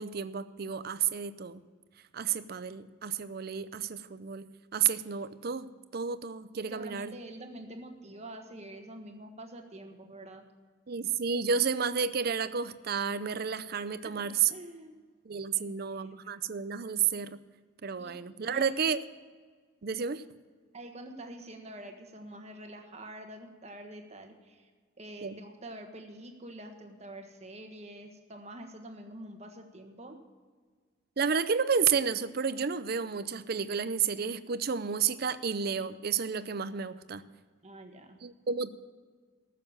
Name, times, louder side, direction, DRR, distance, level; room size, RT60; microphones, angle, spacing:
voice 1, 0.0-1.6 2.1-7.1 10.9-14.5 15.3-17.4 17.8-19.0 19.8-20.2 25.2-25.4 31.2-37.3 38.2-38.7, right 6 dB, 50° right, 14 dB, 0.5 m, -31 dB
voice 2, 6.7-10.4 14.0-15.0 15.5-16.1 18.0-18.7 20.7-24.7 25.0-30.2 37.6-38.2, right 1 dB, 35° right, 4 dB, 1.4 m, -46 dB
14.0 x 6.7 x 7.1 m, 1.5 s
head